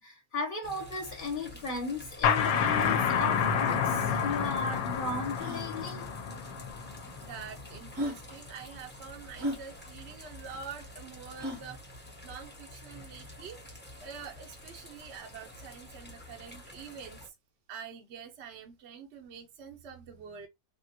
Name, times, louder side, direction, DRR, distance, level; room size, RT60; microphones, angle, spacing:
voice 1, 0.0-6.1, left 3 dB, 40° left, 1.1 m, -36 dB
sound 1, 0.6-17.3, left 1 dB, 10° left, 0.7 m, -49 dB
sound 2, 1.5-1.6 2.1-2.2 2.7-3.0 4.4-4.5 5.4-5.7 6.7-6.8 7.5-7.6 7.9-8.2 9.4-9.6 11.4-11.7, equal, 85° right, 1.7 m, -36 dB
sound 3, 2.2-7.7, left 7 dB, 90° left, 1.1 m, -29 dB
voice 2, 7.2-11.8 12.2-13.6 14.0-17.3 17.7-20.5, right 6 dB, 60° right, 0.8 m, -46 dB
3.5 x 2.4 x 2.8 m
omnidirectional pair, 1.5 m